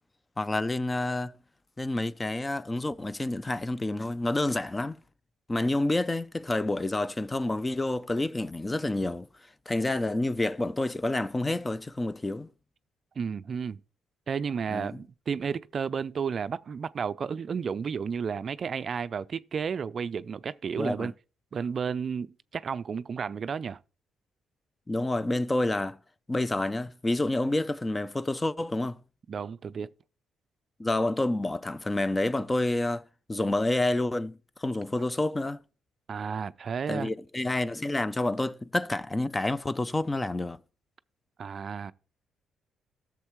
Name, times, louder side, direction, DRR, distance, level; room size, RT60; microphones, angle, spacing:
voice 1, 0.4-1.3 1.8-5.0 5.5-9.3 9.7-12.5 14.7-15.0 20.8-21.1 24.9-26.0 26.3-29.0 30.8-33.0 33.3-35.6 36.9-40.6, left 2 dB, 20° left, 0.4 m, -28 dB
voice 2, 13.2-13.8 14.3-21.1 21.5-23.8 29.3-29.9 36.1-37.1 41.4-41.9, right 6 dB, 50° right, 0.3 m, -32 dB
13.0 x 7.2 x 3.1 m
cardioid pair, 90°, 0 cm